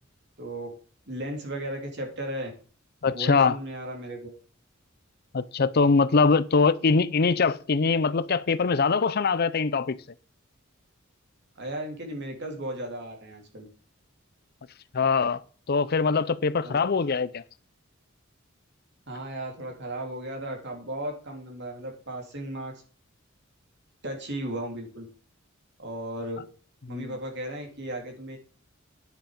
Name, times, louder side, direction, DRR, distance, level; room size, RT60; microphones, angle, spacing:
voice 1, 0.4-0.7 1.1-2.5 3.1-4.3 11.6-13.7 16.6-16.8 19.1-22.7 24.0-25.1 25.8-26.4 26.9-28.4, right 1 dB, 60° right, 3.3 m, -35 dB
voice 2, 3.0-3.6 5.3-10.0 14.9-15.4 15.7-17.4 26.9-27.2, left 4 dB, 50° left, 0.6 m, -23 dB
10.5 x 7.1 x 5.2 m
head